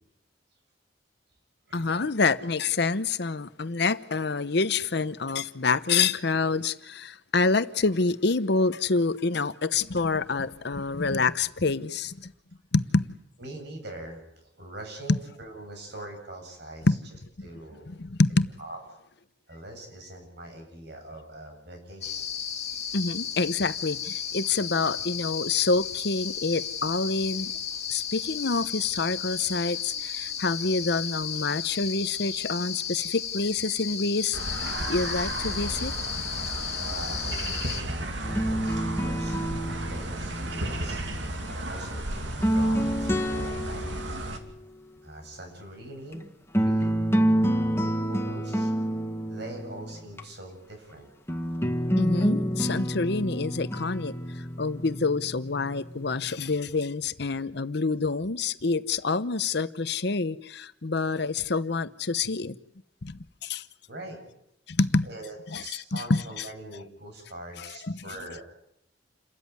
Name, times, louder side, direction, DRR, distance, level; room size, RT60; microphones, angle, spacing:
voice 1, 1.7-12.3 12.7-13.2 15.1-15.2 16.9-17.0 17.9-18.5 22.9-27.5 27.9-35.9 52.0-54.2 54.6-62.6 63.0-63.6 64.7-65.1 65.5-66.4 67.6-68.0, left 3 dB, 65° left, 0.9 m, -27 dB
voice 2, 13.4-16.9 17.4-17.9 18.6-18.8 19.5-22.3 36.5-39.4 39.8-44.2 45.0-46.3 46.6-46.9 47.4-48.7 49.3-51.1 63.5-63.6 63.9-64.2 65.0-68.4, right 1 dB, 65° right, 7.8 m, -43 dB
sound 1, 22.0-37.8, left 8 dB, 40° left, 2.2 m, -34 dB
sound 2, 34.3-44.4, right 1 dB, 85° right, 2.7 m, -34 dB
sound 3, 38.2-41.5 42.2-44.4 46.1-46.2 46.5-50.2 51.3-56.3, equal, 15° left, 1.6 m, -28 dB
29.0 x 14.0 x 9.5 m
head